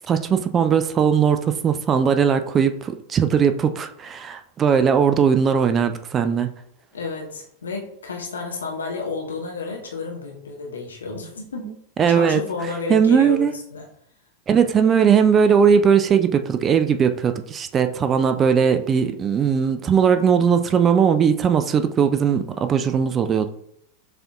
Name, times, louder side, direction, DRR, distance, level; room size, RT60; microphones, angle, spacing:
voice 1, 0.1-6.5 11.6-13.5 14.5-23.5, right 7 dB, 25° right, 9 dB, 0.3 m, -19 dB
voice 2, 6.9-11.7 12.1-13.9, left 4 dB, 70° left, 0 dB, 0.9 m, -31 dB
6.6 x 2.6 x 2.3 m, 0.71 s
figure-of-eight pair, 90°, 0 cm